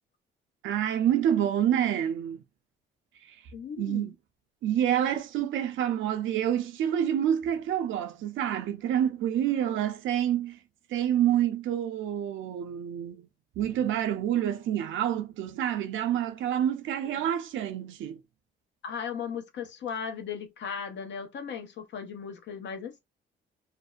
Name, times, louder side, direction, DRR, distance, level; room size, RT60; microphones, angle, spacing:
voice 1, 0.6-2.4 3.8-4.1 4.6-10.6 10.9-13.3 13.6-18.2, right 10 dB, 75° right, 0.5 m, -27 dB
voice 2, 3.5-4.1 9.6-9.8 17.2-17.3 18.8-23.0, left 7 dB, 65° left, 0.8 m, -37 dB
2.6 x 2.1 x 2.3 m
cardioid pair, 90°, 20 cm